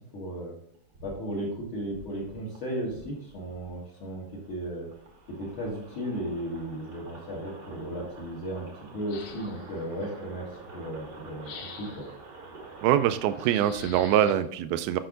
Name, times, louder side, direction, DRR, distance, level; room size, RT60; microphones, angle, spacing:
voice 1, 0.1-0.5 1.0-4.9 5.4-8.7 8.9-11.5 11.8-12.1, right 1 dB, 55° left, -5 dB, 1.4 m, -35 dB
sound 1, 0.7-13.5, right 3 dB, 60° right, 1.1 m, -48 dB
sound 2, 9.1-9.8 11.4-12.2 13.4-14.4, left 7 dB, 85° left, 3.0 m, -45 dB
voice 2, 12.8-15.0, right 11 dB, 80° right, 12 dB, 2.3 m, -24 dB
7.9 x 5.9 x 3.8 m, 0.71 s
omnidirectional pair, 4.7 m